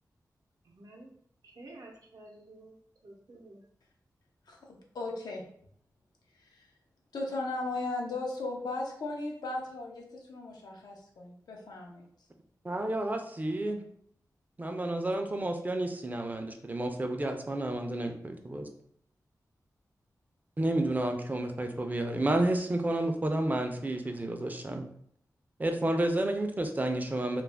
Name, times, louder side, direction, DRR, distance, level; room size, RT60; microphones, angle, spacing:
voice 1, 0.7-1.1 1.4-2.8 3.0-3.6, right 2 dB, 70° right, -1 dB, 0.6 m, -51 dB
voice 2, 4.5-5.4 6.4-6.7 7.1-12.1, left 2 dB, 90° left, 0 dB, 0.5 m, -37 dB
voice 3, 12.6-13.8 14.6-18.7 20.6-24.9 25.6-27.4, right 1 dB, 25° right, 5 dB, 0.4 m, -30 dB
2.3 x 2.1 x 3.3 m, 0.66 s
cardioid pair, 60°, 7 cm